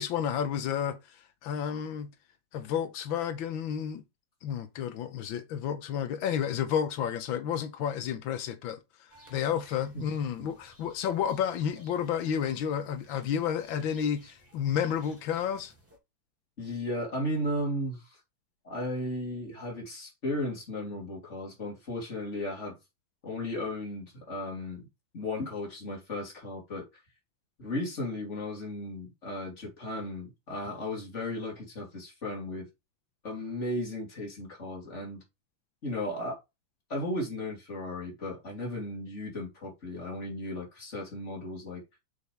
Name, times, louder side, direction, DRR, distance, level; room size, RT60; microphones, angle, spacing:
voice 1, 0.0-2.1 2.5-4.0 4.4-15.7, left 8 dB, 90° left, 1.6 m, -31 dB
sound 1, 9.1-16.0, equal, 5° right, 3.3 m, -57 dB
voice 2, 16.6-18.2 18.6-22.8 23.2-24.9 25.1-26.9 27.6-32.7 33.2-35.2 35.8-36.4 36.9-41.8, left 1 dB, 35° left, 3.4 m, -35 dB
6.9 x 6.7 x 3.3 m
omnidirectional pair, 2.1 m